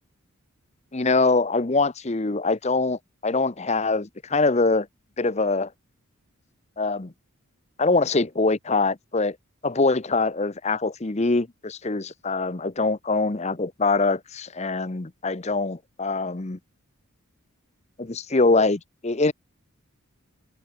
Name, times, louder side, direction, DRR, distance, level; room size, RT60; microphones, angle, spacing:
voice 1, 0.9-4.9 5.2-5.7 6.8-7.1 7.8-9.4 9.6-16.6 18.0-19.3, left 3 dB, 30° left, 0.8 m, -23 dB
head